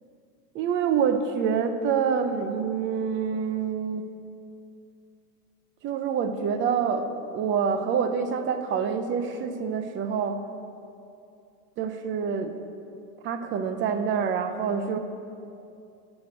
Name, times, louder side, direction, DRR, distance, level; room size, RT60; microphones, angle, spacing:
voice 1, 0.5-4.1 5.8-10.5 11.8-12.6 13.2-15.0, right 6 dB, 25° right, 9 dB, 0.6 m, -26 dB
14.0 x 5.2 x 8.1 m, 2.6 s
supercardioid pair, 140°, 46 cm